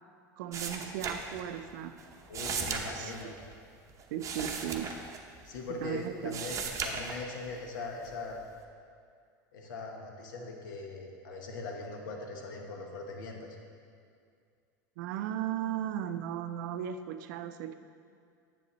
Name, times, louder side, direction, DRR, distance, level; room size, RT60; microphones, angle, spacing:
voice 1, 0.4-2.0 2.9-3.1 4.1-4.9 5.8-6.4 15.0-17.8, right 10 dB, 70° right, 10 dB, 0.4 m, -36 dB
sound 1, 0.5-1.7 2.0-5.8 6.1-7.6 8.0-8.6, right 5 dB, 30° right, 0.7 m, -37 dB
voice 2, 2.3-3.3 5.4-8.4 9.5-13.6, left 3 dB, 85° left, 1 dB, 1.0 m, -40 dB
7.6 x 7.0 x 3.1 m, 2.2 s
hypercardioid pair, 105°, 10 cm